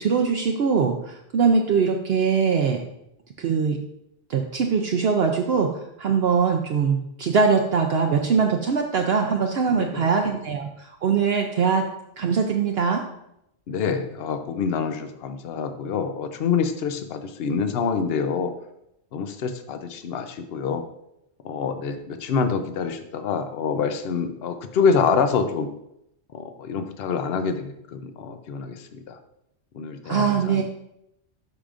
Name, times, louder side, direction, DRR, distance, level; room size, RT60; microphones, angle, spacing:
voice 1, 0.0-2.8 3.4-3.8 4.3-11.8 12.2-13.0 30.0-30.6, right 5 dB, 65° right, 3 dB, 0.8 m, -22 dB
voice 2, 9.7-10.0 13.7-18.5 19.1-20.8 21.4-25.7 26.3-28.8 29.1-29.2 29.8-30.6, left 5 dB, 60° left, 8 dB, 0.9 m, -26 dB
11.5 x 4.9 x 2.5 m, 0.80 s
omnidirectional pair, 1.2 m